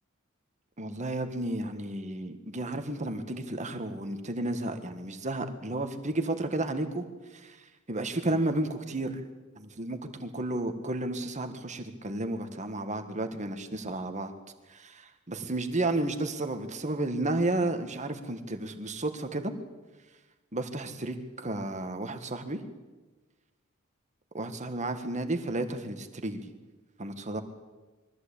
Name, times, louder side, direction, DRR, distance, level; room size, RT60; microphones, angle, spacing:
voice 1, 0.8-7.1 7.3-7.6 7.9-9.2 9.6-14.3 14.7-19.5 20.5-22.6 24.3-26.5 27.0-27.4, right 2 dB, 35° right, 7 dB, 1.8 m, -32 dB
22.5 x 14.5 x 8.6 m, 1.2 s
head